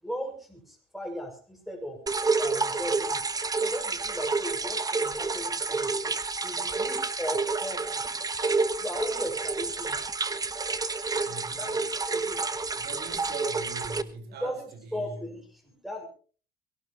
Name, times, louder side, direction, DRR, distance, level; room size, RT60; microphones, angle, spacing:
voice 1, 0.0-2.0 2.4-3.2 3.6-6.1 6.4-8.3 8.7-10.2 11.6-11.7 12.1-12.7 14.4-16.1, equal, ahead, 4 dB, 6.4 m, -37 dB
sound 1, 2.1-14.0, right 4 dB, 20° right, 1.2 m, -29 dB
voice 2, 11.2-11.9 12.7-15.4, right 4 dB, 75° right, 8 dB, 4.8 m, -42 dB
22.5 x 17.5 x 3.1 m, 0.39 s
cardioid pair, 110°, 17 cm